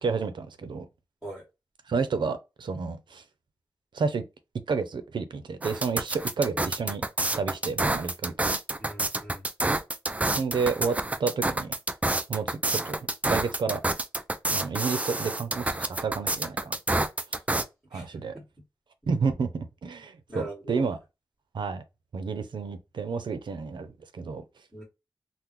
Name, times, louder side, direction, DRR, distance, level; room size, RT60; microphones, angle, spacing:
voice 1, 0.0-0.8 1.9-3.2 3.9-4.2 4.7-7.0 7.4-8.3 10.4-11.7 12.3-13.0 13.2-13.8 14.5-17.0 17.9-18.4 19.1-21.0 21.5-21.8 22.1-24.4, right 5 dB, 85° right, 0.5 m, -30 dB
sound 1, 5.6-17.6, right 2 dB, 20° right, 0.4 m, -28 dB
voice 2, 8.8-9.4 17.9-18.0 18.3-18.4 20.3-20.8 24.7-24.8, right 1 dB, ahead, 1.7 m, -40 dB
3.7 x 2.1 x 3.0 m
wide cardioid pair, 110°, 8 cm